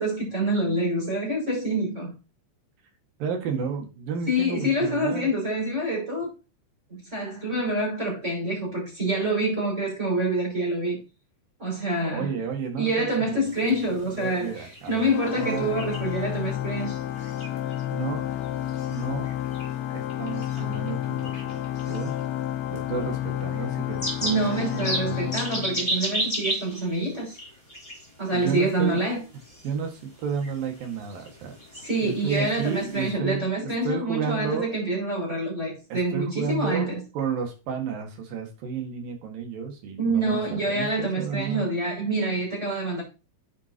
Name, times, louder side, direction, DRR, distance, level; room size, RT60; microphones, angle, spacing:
voice 1, 0.0-2.1 4.3-6.3 6.9-11.0 11.6-12.3 12.8-17.0 24.2-27.4 28.2-29.2 31.7-37.0 40.0-43.0, right 1 dB, 15° right, 5.6 m, -26 dB
voice 2, 3.2-5.3 12.1-13.1 13.3-15.7 17.9-18.3 18.9-19.3 19.9-21.6 21.9-22.2 22.7-25.3 28.3-29.0 29.6-31.5 32.0-33.4 33.8-34.7 35.9-36.9 37.1-41.7, right 6 dB, 55° right, 3.1 m, -32 dB
sound 1, 13.4-33.1, equal, 5° left, 4.4 m, -37 dB
Organ, 15.1-26.2, left 12 dB, 75° left, 2.8 m, -31 dB
10.5 x 8.0 x 3.0 m
omnidirectional pair, 5.8 m